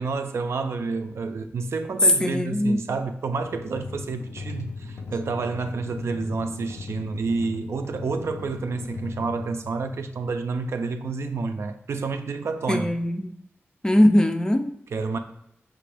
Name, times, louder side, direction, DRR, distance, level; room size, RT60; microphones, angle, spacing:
voice 1, 0.0-12.9 14.9-15.2, right 4 dB, 70° right, 0.4 m, -29 dB
voice 2, 2.2-2.8 12.7-13.3 13.8-14.8, left 1 dB, 15° left, 0.4 m, -21 dB
sound 1, 3.4-10.3, left 4 dB, 85° left, 0.5 m, -38 dB
5.8 x 2.6 x 3.3 m
wide cardioid pair, 110°, 5 cm